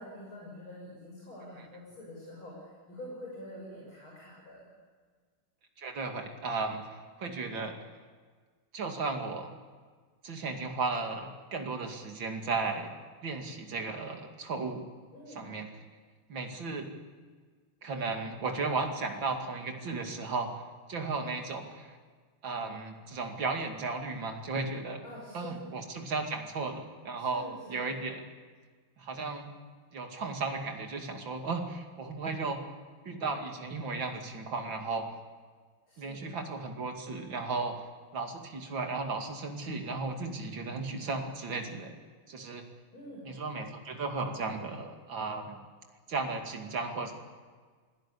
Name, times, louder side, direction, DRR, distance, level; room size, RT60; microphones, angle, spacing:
voice 1, 0.0-4.7 15.1-15.5 25.0-25.6 27.3-27.9 35.9-36.3 42.9-43.2, left 1 dB, 70° left, -4 dB, 7.3 m, -46 dB
voice 2, 5.8-7.7 8.7-9.5 10.2-12.9 13.2-14.8 15.3-15.7 16.3-16.9 17.8-20.6 20.9-22.0 22.4-25.0 25.3-28.2 29.0-29.5 29.9-32.6 33.0-35.1 36.0-37.8 38.1-41.9 42.3-42.6 43.2-45.6 46.1-47.1, right 3 dB, 60° right, 3 dB, 3.1 m, -35 dB
26.5 x 17.5 x 8.5 m, 1.6 s
omnidirectional pair, 2.4 m